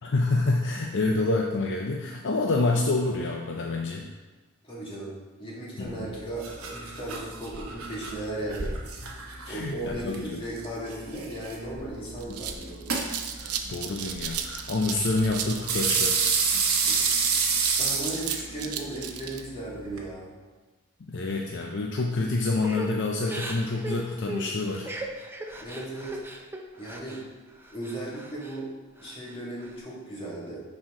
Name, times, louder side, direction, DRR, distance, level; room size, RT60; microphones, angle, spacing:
voice 1, 0.0-4.1 5.8-6.1 9.0-9.1 9.5-10.4 13.4-16.3 21.1-24.9, left 2 dB, 55° left, 1 dB, 0.5 m, -27 dB
voice 2, 4.6-5.1 5.4-8.8 9.5-12.8 16.9-17.2 17.8-20.3 25.6-26.2 26.8-27.2 27.7-28.7 29.0-30.6, right 1 dB, 25° left, -6 dB, 2.2 m, -36 dB
sound 1, 5.8-20.1, right 5 dB, 70° right, 1.2 m, -31 dB
sound 2, 11.6-11.7 12.0-19.4, right 8 dB, 85° right, 0.7 m, -34 dB
Crying sobbing / Breathing, 22.6-27.2 27.6-28.6 29.0-29.7, right 1 dB, 10° right, 0.5 m, -38 dB
10.5 x 4.4 x 3.7 m, 1.3 s
head